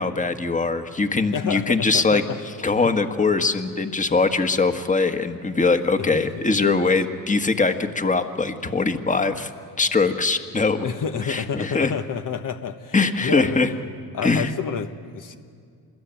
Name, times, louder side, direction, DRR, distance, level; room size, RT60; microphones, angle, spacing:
voice 1, 0.0-2.2 2.6-9.5 9.8-10.8 11.3-11.9 12.9-13.7 14.2-14.5, left 3 dB, 20° left, 8 dB, 1.7 m, -22 dB
voice 2, 1.3-2.4 2.7-2.9 6.0-6.5 10.8-13.6 14.1-15.4, left 7 dB, 55° left, 7 dB, 1.3 m, -29 dB
26.0 x 21.0 x 9.2 m, 2.2 s
cardioid pair, 80°, 39 cm